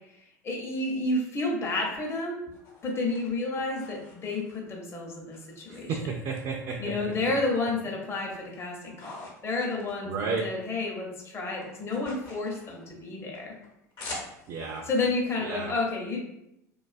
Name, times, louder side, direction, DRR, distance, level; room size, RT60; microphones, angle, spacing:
voice 1, 0.4-2.4 2.8-6.0 6.8-13.5 14.9-16.2, left 2 dB, 25° left, -1 dB, 0.6 m, -30 dB
sound 1, 2.0-4.8 5.3-6.4 6.7-7.8 8.1-10.7 11.0-14.8, left 2 dB, 55° left, 0.9 m, -46 dB
voice 2, 5.7-6.9 10.0-10.5 14.5-14.9 15.4-15.7, right 4 dB, 50° right, 0 dB, 0.3 m, -32 dB
2.5 x 2.3 x 2.4 m, 0.82 s
hypercardioid pair, 80°, 9 cm